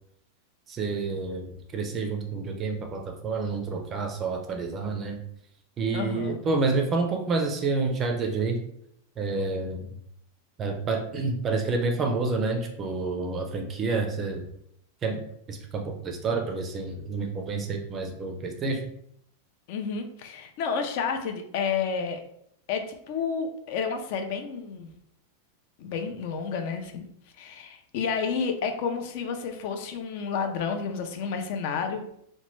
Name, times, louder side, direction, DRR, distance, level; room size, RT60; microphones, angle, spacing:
voice 1, 0.7-5.2 5.8-8.6 9.2-9.9 10.6-14.4 15.0-15.2 15.5-18.8, right 3 dB, 25° right, 3 dB, 0.4 m, -29 dB
voice 2, 5.9-6.4 19.7-22.2 22.7-24.9 25.8-27.0 27.4-32.0, left 6 dB, 55° left, 6 dB, 0.5 m, -30 dB
3.0 x 2.1 x 3.0 m, 0.72 s
supercardioid pair, 150°, 0 cm